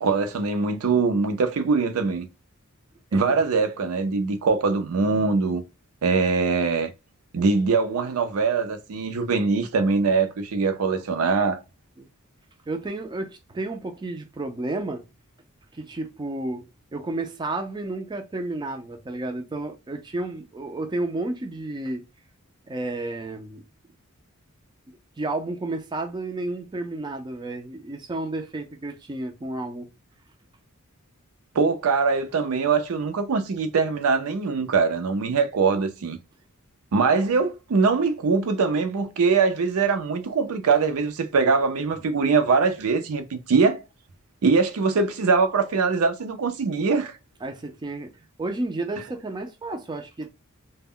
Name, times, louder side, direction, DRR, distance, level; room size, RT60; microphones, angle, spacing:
voice 1, 0.0-2.3 3.1-5.6 6.0-6.9 7.3-11.6 31.5-36.2 36.9-43.8 44.4-47.1, right 4 dB, 75° right, 0.5 m, -22 dB
voice 2, 12.7-15.0 15.7-16.7 16.9-22.0 22.7-23.6 25.2-29.9 47.4-48.1 48.4-50.3, right 2 dB, 20° right, 0.4 m, -31 dB
2.1 x 2.0 x 3.6 m
head